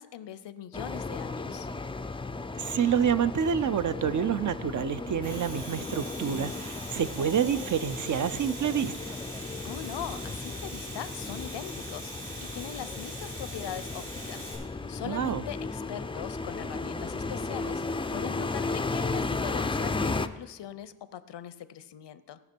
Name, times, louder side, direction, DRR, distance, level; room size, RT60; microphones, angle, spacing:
voice 1, 0.0-1.7 9.6-22.4, left 10 dB, 90° left, 15 dB, 0.6 m, -41 dB
sound 1, 0.7-20.3, left 3 dB, 15° left, 0.3 m, -35 dB
voice 2, 2.6-9.1 15.0-15.4, right 8 dB, 50° right, 14 dB, 0.4 m, -28 dB
Domestic sounds home sounds, 5.0-14.5, right 1 dB, 80° right, 3.8 m, -43 dB
17.0 x 6.0 x 4.4 m, 1.1 s
wide cardioid pair, 85°, 41 cm